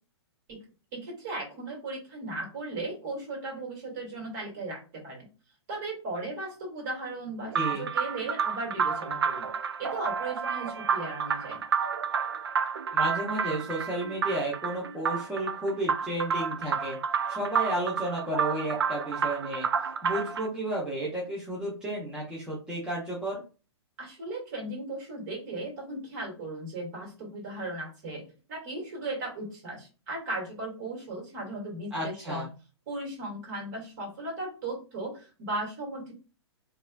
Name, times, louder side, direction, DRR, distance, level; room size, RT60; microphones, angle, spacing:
voice 1, 0.9-5.3 5.7-9.5 9.8-11.6 24.0-32.5 32.9-36.1, right 2 dB, 40° right, -1 dB, 2.0 m, -37 dB
voice 2, 7.5-7.9 12.9-17.0 17.3-19.7 20.0-23.4 31.9-32.5, right 1 dB, 5° right, -6 dB, 0.9 m, -32 dB
sound 1, 7.5-20.5, right 6 dB, 60° right, 0.4 m, -30 dB
5.2 x 2.7 x 2.3 m, 0.34 s
figure-of-eight pair, 115°, 15 cm